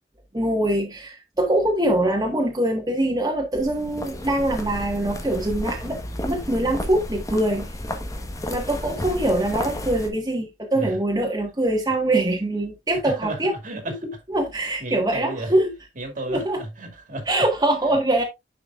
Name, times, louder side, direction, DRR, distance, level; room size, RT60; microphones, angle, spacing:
voice 1, 0.3-7.7 8.5-13.5 14.0-15.7 16.3-16.6 17.3-18.2, right 1 dB, 20° right, 1.6 m, -23 dB
sound 1, 3.5-10.1, left 1 dB, 20° left, 1.2 m, -32 dB
voice 2, 13.0-13.4 13.6-14.0 14.8-15.5 16.0-17.3, right 1 dB, 50° right, 2.3 m, -32 dB
10.0 x 5.6 x 2.5 m
head